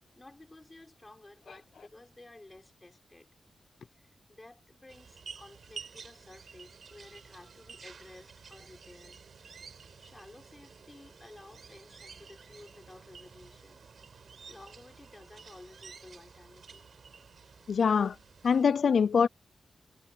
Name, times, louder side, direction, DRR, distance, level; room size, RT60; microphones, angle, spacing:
voice 1, 0.2-3.3 3.9-9.2 10.0-13.8 14.5-16.9, left 2 dB, 20° left, 4.8 m, -54 dB
sound 1, 4.9-18.7, right 6 dB, 60° right, 6.7 m, -51 dB
voice 2, 17.7-18.2 18.4-19.3, left 6 dB, 65° left, 0.3 m, -24 dB
wide cardioid pair, 115°, 0 cm